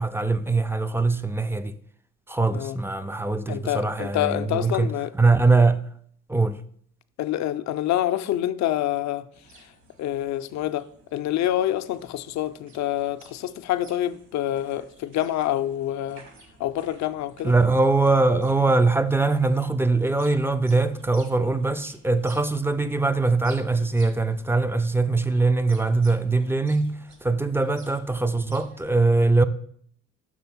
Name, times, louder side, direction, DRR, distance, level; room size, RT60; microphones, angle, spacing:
voice 1, 0.0-1.8 2.3-5.9 6.3-6.6 17.4-29.4, right 3 dB, 10° right, 0.3 m, -22 dB
voice 2, 3.5-5.1 7.2-9.3 10.0-16.3 16.6-17.5, left 13 dB, 65° left, 0.5 m, -27 dB
sound 1, 9.3-28.8, right 3 dB, 65° right, 1.5 m, -53 dB
6.2 x 3.3 x 5.9 m
cardioid pair, 90°, 30 cm